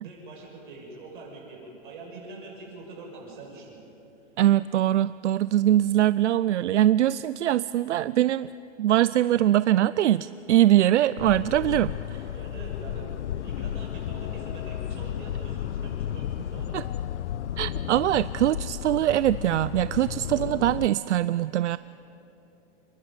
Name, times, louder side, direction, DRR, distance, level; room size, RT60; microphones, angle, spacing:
voice 1, 0.0-3.8 12.3-16.8, right 3 dB, 45° right, -2 dB, 6.8 m, -44 dB
voice 2, 4.4-8.5 8.8-12.2 16.7-16.8 17.6-21.8, right 13 dB, 80° right, 17 dB, 0.5 m, -22 dB
sound 1, 11.2-20.9, left 10 dB, 80° left, 0.7 m, -33 dB
29.0 x 11.5 x 9.0 m, 2.9 s
hypercardioid pair, 175°, 35 cm